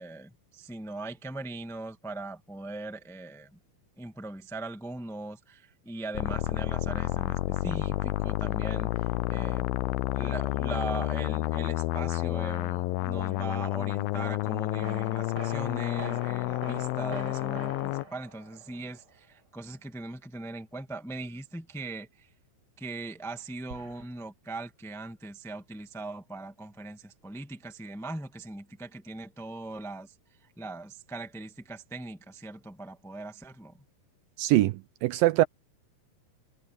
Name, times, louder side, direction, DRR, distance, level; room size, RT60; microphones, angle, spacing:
voice 1, 0.0-3.6 4.0-9.7 10.1-22.3 22.8-30.1 30.4-33.8, right 2 dB, ahead, 0.7 m, -40 dB
sound 1, 6.1-18.0, left 18 dB, 80° left, 2.3 m, -30 dB
sound 2, 13.2-13.5 14.8-19.2 23.7-24.1, right 2 dB, 25° right, 6.8 m, -45 dB
voice 2, 34.4-35.4, right 16 dB, 80° right, 2.2 m, -23 dB
omnidirectional pair, 4.4 m